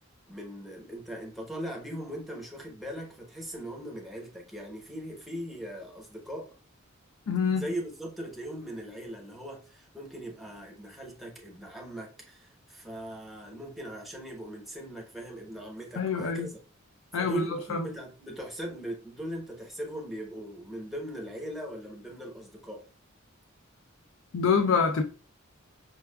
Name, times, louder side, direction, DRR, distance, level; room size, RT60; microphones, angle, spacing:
voice 1, 0.3-6.5 7.5-16.6 17.1-22.8, right 1 dB, ahead, 0.8 m, -39 dB
voice 2, 7.3-7.7 16.0-16.5 17.1-17.4 17.7-17.9 24.3-25.0, left 5 dB, 70° left, 0.4 m, -25 dB
5.6 x 2.3 x 2.2 m
head